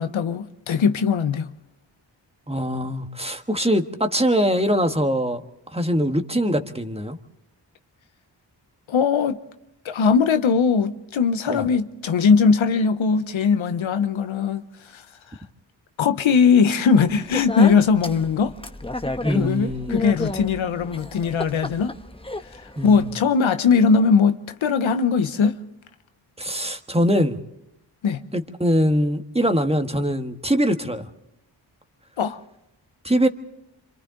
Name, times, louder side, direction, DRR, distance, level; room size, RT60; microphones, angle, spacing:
voice 1, 0.0-1.5 8.9-9.4 9.8-14.7 14.9-15.0 15.3-15.4 16.0-18.5 19.3-21.9 22.8-25.6 28.0-28.2 32.2-32.4, left 5 dB, 85° left, 0.9 m, -20 dB
voice 2, 2.5-5.4 5.7-7.2 11.5-11.6 19.2-20.1 22.8-23.1 26.4-27.4 28.3-31.1 33.0-33.3, equal, 15° right, 1.6 m, -22 dB
Speech, 17.1-23.1, left 2 dB, 10° left, 1.0 m, -32 dB
27.0 x 25.0 x 3.9 m
cardioid pair, 45°, 46 cm